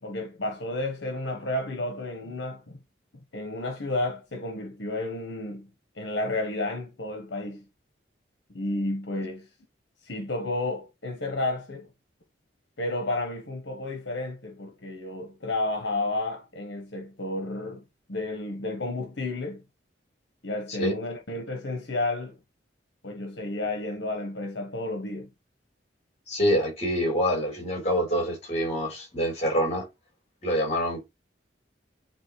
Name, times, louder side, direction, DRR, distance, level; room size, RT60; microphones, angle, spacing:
voice 1, 0.0-2.8 3.3-5.7 5.9-7.7 8.5-9.5 10.0-11.9 12.8-17.8 18.1-19.6 20.4-22.3 23.0-25.3, left 2 dB, 70° left, 1.4 m, -31 dB
voice 2, 26.3-29.9 30.4-31.0, equal, 35° left, 4.1 m, -26 dB
9.3 x 4.0 x 3.2 m
head